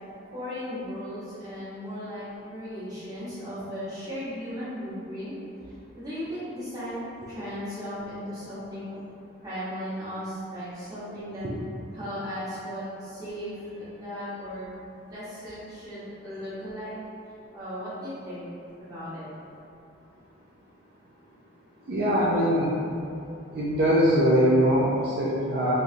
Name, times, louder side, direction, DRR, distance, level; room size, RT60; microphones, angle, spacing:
voice 1, 0.3-5.3 5.9-7.0 7.3-8.9 9.4-11.4 11.9-14.7 15.1-16.9 17.5-18.4 18.8-19.3, equal, 20° right, -13 dB, 1.1 m, -36 dB
voice 2, 21.9-22.7 23.5-25.7, equal, 55° right, -8 dB, 0.4 m, -22 dB
3.1 x 2.3 x 2.6 m, 2.6 s
head